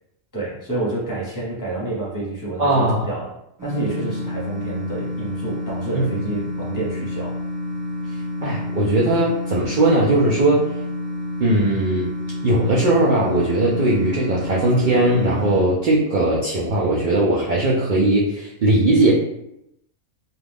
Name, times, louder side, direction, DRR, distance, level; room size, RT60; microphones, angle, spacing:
voice 1, 0.3-3.3 3.6-7.4, right 2 dB, 15° left, -5 dB, 0.8 m, -28 dB
voice 2, 2.6-3.1 5.9-6.0 8.4-10.7 11.4-12.1 12.4-19.1, right 2 dB, 85° right, -4 dB, 0.4 m, -19 dB
sound 1, 3.6-15.6, left 1 dB, 25° right, 0.4 m, -29 dB
2.4 x 2.3 x 3.4 m, 0.82 s
omnidirectional pair, 1.4 m